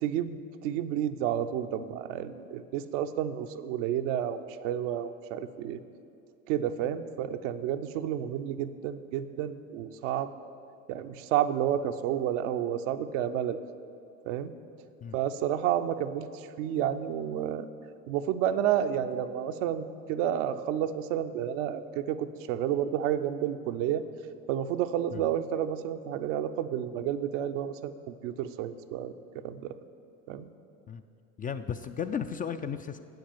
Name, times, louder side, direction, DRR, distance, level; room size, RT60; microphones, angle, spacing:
voice 1, 0.0-5.8 6.5-10.3 10.9-13.6 14.3-14.5 15.1-16.3 16.6-17.7 18.1-24.0 24.5-27.9 28.2-29.1 29.4-29.7 30.3-30.5, right 10 dB, 70° right, 9 dB, 0.6 m, -30 dB
voice 2, 31.4-33.0, left 7 dB, 25° left, 9 dB, 0.3 m, -34 dB
8.5 x 7.9 x 7.1 m, 2.7 s
hypercardioid pair, 75°, 39 cm